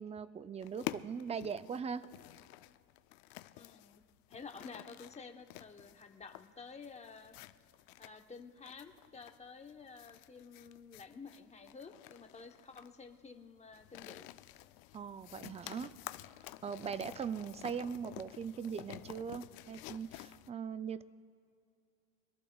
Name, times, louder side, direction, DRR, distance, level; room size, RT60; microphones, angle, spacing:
voice 1, 0.0-2.0 14.9-15.9 16.6-21.0, right 6 dB, 20° right, 14 dB, 0.4 m, -40 dB
sound 1, 0.6-20.5, left 16 dB, 90° left, 0.5 m, -50 dB
voice 2, 3.5-4.0 4.3-7.3 8.0-14.3, left 5 dB, 20° left, 5 dB, 1.0 m, -51 dB
25.5 x 13.5 x 2.3 m, 2.5 s
cardioid pair, 115°, 35 cm